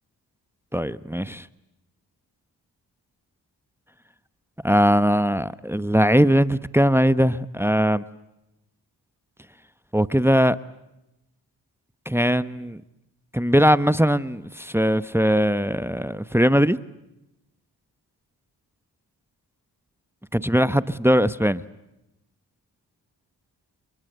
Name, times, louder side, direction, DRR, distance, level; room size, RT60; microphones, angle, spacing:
voice 1, 0.7-1.4 4.6-8.0 9.9-10.6 12.1-12.8 13.3-16.8 20.3-21.6, equal, 5° right, 15 dB, 1.1 m, -20 dB
26.5 x 23.5 x 8.1 m, 0.91 s
cardioid pair, 45°, 42 cm